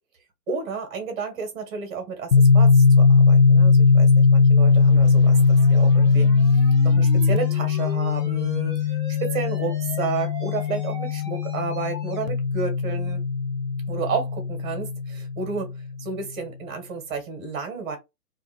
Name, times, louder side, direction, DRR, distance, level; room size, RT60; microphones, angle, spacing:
voice 1, 0.5-6.6 6.8-8.8 9.2-13.2 13.9-15.7 16.0-18.0, right 5 dB, 15° right, 0.9 m, -31 dB
sound 1, 2.3-15.9, left 4 dB, 55° left, 0.5 m, -19 dB
sound 2, 4.5-12.3, equal, 15° left, 0.8 m, -41 dB
2.7 x 2.5 x 4.0 m
hypercardioid pair, 160°, 48 cm